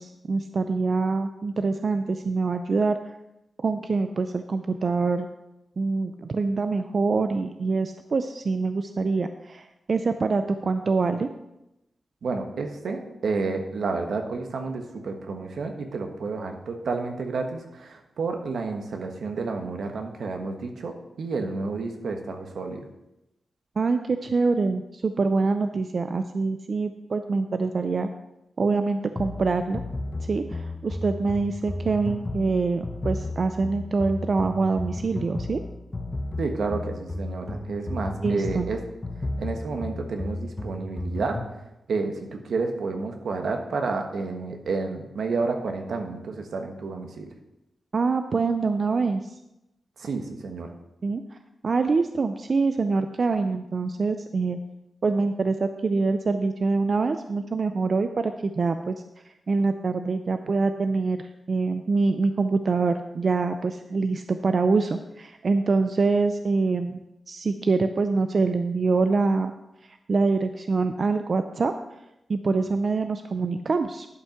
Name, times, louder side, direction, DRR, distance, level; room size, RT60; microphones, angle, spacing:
voice 1, 0.0-3.0 3.6-5.3 5.8-11.3 23.8-28.1 28.6-29.8 30.2-35.6 38.2-38.7 47.9-49.4 51.0-51.4 51.6-54.6 55.0-58.9 59.5-69.5 69.9-71.7 72.3-74.1, right 4 dB, 45° right, 8 dB, 0.4 m, -25 dB
voice 2, 12.2-22.9 36.4-38.8 39.4-41.4 41.9-47.3 50.0-50.7, right 4 dB, 75° right, 4 dB, 1.3 m, -30 dB
sound 1, 29.2-41.6, left 2 dB, 20° left, 0.9 m, -33 dB
11.0 x 5.6 x 5.7 m, 0.91 s
wide cardioid pair, 155°, 0 cm